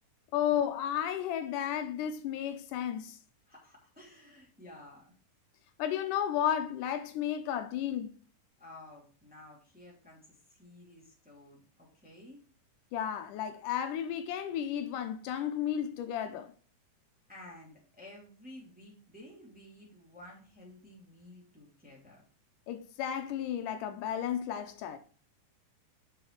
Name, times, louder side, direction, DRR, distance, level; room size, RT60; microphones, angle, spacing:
voice 1, 0.3-3.2 5.8-8.2 12.9-16.5 22.7-25.0, left 10 dB, 85° left, 2.2 m, -33 dB
voice 2, 3.5-5.1 8.6-12.5 17.3-22.2, left 1 dB, 5° right, 2.0 m, -53 dB
6.5 x 5.8 x 4.6 m
omnidirectional pair, 3.7 m